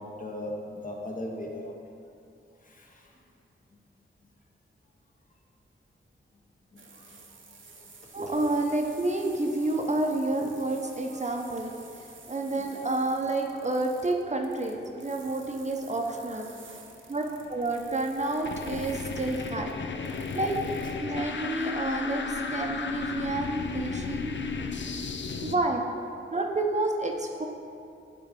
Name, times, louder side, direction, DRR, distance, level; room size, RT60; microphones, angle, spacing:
voice 1, 0.0-1.8 2.6-3.1 6.7-7.2 7.4-8.4 11.4-11.6 12.5-12.6 21.0-21.2 24.1-24.3 24.7-25.5, left 1 dB, 40° left, 0 dB, 1.0 m, -41 dB
sound 1, 6.8-20.9, right 4 dB, 65° right, 0.8 m, -52 dB
voice 2, 8.1-16.5 17.1-19.7 20.3-20.6 21.0-24.3 25.4-25.8 26.3-27.5, right 2 dB, 35° right, 2 dB, 0.7 m, -29 dB
sound 2, 17.4-25.6, left 5 dB, 60° left, 0.5 m, -34 dB
11.0 x 3.8 x 5.2 m, 2.5 s
wide cardioid pair, 100°, 21 cm